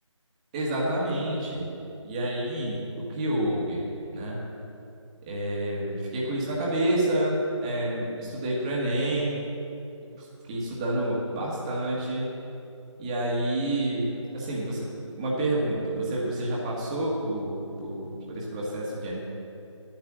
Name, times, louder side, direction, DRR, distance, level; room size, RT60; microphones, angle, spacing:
voice 1, 0.5-1.7 2.0-3.8 4.1-4.4 5.2-9.4 10.1-12.3 13.0-14.9 15.2-19.2, right 1 dB, 15° right, -4 dB, 1.6 m, -29 dB
11.0 x 8.8 x 7.4 m, 2.7 s
figure-of-eight pair, 165°, 17 cm